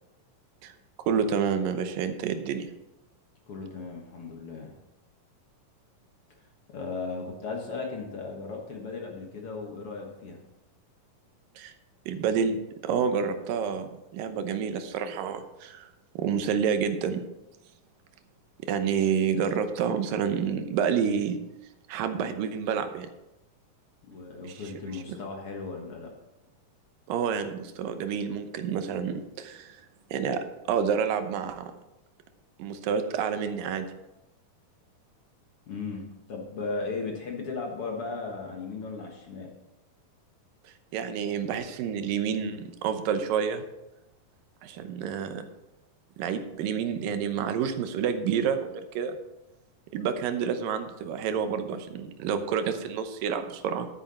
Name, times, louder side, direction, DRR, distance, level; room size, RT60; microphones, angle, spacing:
voice 1, 1.1-2.7 11.6-11.7 12.1-15.9 16.2-17.2 18.7-21.4 21.9-23.1 24.4-25.2 27.1-29.8 30.1-31.7 32.6-33.9 40.9-43.6 44.6-45.5 46.2-49.2 49.9-53.9, right 7 dB, 90° right, 8 dB, 2.6 m, -29 dB
voice 2, 3.5-4.7 6.7-10.4 24.1-26.1 35.7-39.5, left 4 dB, 50° left, 0 dB, 1.9 m, -36 dB
12.0 x 9.0 x 4.3 m, 0.93 s
omnidirectional pair, 3.8 m